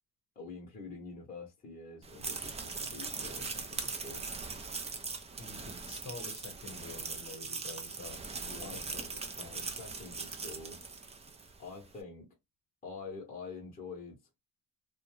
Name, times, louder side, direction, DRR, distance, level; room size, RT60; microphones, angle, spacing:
voice 1, 0.4-4.3 8.6-9.1 9.4-10.8 11.6-12.3 12.8-14.4, left 4 dB, 20° left, 0.8 m, -47 dB
sound 1, 2.0-11.6, right 4 dB, 20° right, 0.3 m, -40 dB
voice 2, 5.4-9.6, left 3 dB, 45° left, 1.0 m, -48 dB
2.5 x 2.2 x 3.0 m
cardioid pair, 135°, 39 cm